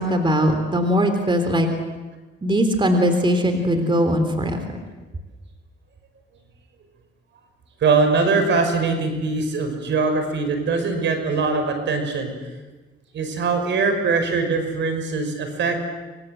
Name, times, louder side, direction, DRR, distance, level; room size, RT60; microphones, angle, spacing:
voice 1, 0.0-1.7 2.4-4.6, equal, 25° right, 7 dB, 3.7 m, -20 dB
voice 2, 7.8-12.3 13.1-15.8, right 4 dB, 65° right, 6 dB, 5.5 m, -22 dB
25.5 x 25.5 x 7.9 m, 1.2 s
cardioid pair, 90°, 20 cm